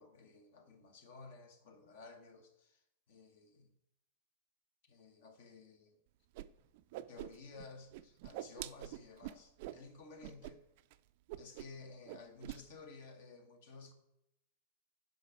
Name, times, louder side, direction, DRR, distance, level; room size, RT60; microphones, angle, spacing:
voice 1, 0.0-3.7 4.9-6.0 7.1-10.6 11.4-13.9, left 4 dB, 55° left, 1.1 m, -54 dB
Whoosh swoosh swish, 6.3-6.5 6.7-7.7 7.9-9.8 10.2-10.5 10.8-10.9 11.3-11.8 12.1-12.6, right 15 dB, 50° right, 0.3 m, -45 dB
6.4 x 5.2 x 4.9 m
figure-of-eight pair, 90°, 0 cm